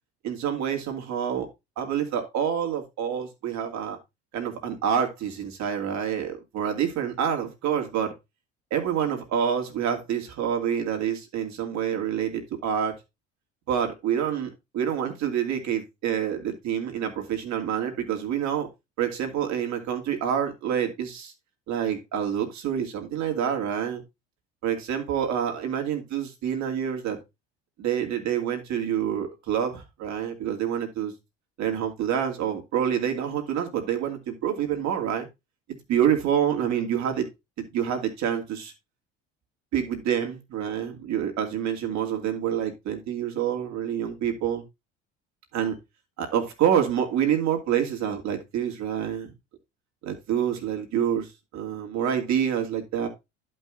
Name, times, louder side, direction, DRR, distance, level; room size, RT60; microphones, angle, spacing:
voice 1, 0.2-1.5 1.8-4.0 4.3-8.1 8.7-13.0 13.7-18.7 19.0-21.3 21.7-24.0 24.6-27.2 27.8-31.1 31.6-35.3 35.9-37.3 37.7-38.7 39.7-44.6 45.5-45.7 46.2-49.3 50.0-53.1, right 9 dB, 60° right, 4 dB, 2.7 m, -27 dB
11.0 x 5.5 x 3.7 m, 0.23 s
hypercardioid pair, 70°, 32 cm